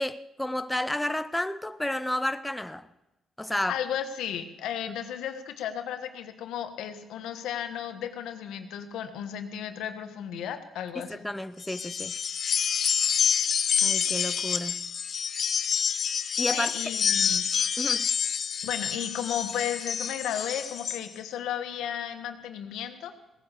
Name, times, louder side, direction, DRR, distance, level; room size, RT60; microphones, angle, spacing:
voice 1, 0.0-2.9 3.4-3.8 10.9-12.2 13.8-14.9 16.4-16.7 17.8-18.1, left 1 dB, 10° left, 0.6 m, -31 dB
voice 2, 3.7-11.2 16.5-17.5 18.6-23.1, left 9 dB, 85° left, 1.3 m, -34 dB
sound 1, 11.6-21.0, left 7 dB, 55° left, 0.8 m, -28 dB
17.5 x 10.0 x 6.6 m
cardioid pair, 90°, 0 cm